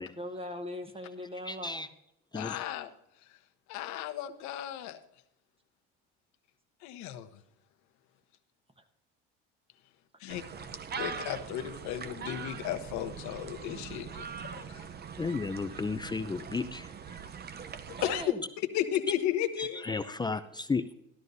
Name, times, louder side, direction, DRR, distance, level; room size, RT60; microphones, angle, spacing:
voice 1, 0.1-1.9 8.8-8.9 10.9-11.1 18.0-18.4, left 1 dB, 20° right, 6 dB, 1.2 m, -40 dB
voice 2, 1.5-1.9 2.3-2.6 15.2-16.9 19.6-20.8, left 4 dB, 15° left, 11 dB, 0.5 m, -33 dB
voice 3, 2.3-2.9 3.7-5.0 6.8-7.3 10.2-10.4 10.9-14.3 14.5-14.6 18.0-18.2 18.7-20.1, left 11 dB, 70° left, 9 dB, 1.0 m, -34 dB
sound 1, 10.3-18.3, right 6 dB, 35° right, 0.8 m, -42 dB
13.0 x 12.5 x 2.7 m, 0.77 s
supercardioid pair, 85°, 30 cm